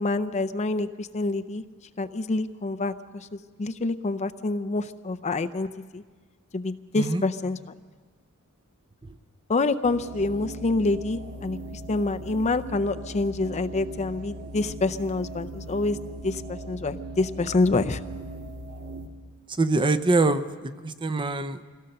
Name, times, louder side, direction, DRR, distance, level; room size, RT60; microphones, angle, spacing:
voice 1, 0.0-1.6 2.0-5.7 5.9-6.0 6.5-7.6 9.5-16.0 16.2-18.0, left 3 dB, 30° left, 9 dB, 0.5 m, -27 dB
sound 1, 9.8-19.1, right 2 dB, 80° right, 1.9 m, -39 dB
voice 2, 19.5-21.6, right 3 dB, 20° right, 10 dB, 0.6 m, -24 dB
24.0 x 17.0 x 6.7 m, 1.5 s
head